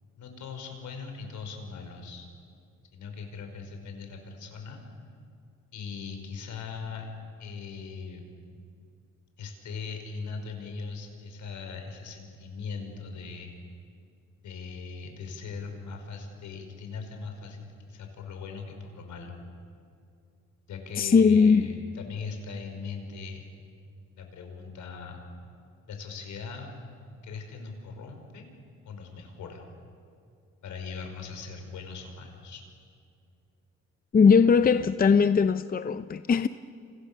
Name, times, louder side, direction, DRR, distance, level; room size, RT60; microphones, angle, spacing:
voice 1, 0.2-2.3 2.9-4.8 5.7-7.1 7.4-8.3 9.4-13.5 14.4-19.4 20.7-23.5 24.2-25.2 25.9-26.7 27.2-28.5 28.9-29.7 30.6-32.6, left 5 dB, 75° left, 5.5 m, -40 dB
voice 2, 21.0-21.7 34.1-36.5, left 5 dB, 30° left, 0.7 m, -20 dB
30.0 x 27.5 x 7.0 m
cardioid pair, 90°, 30 cm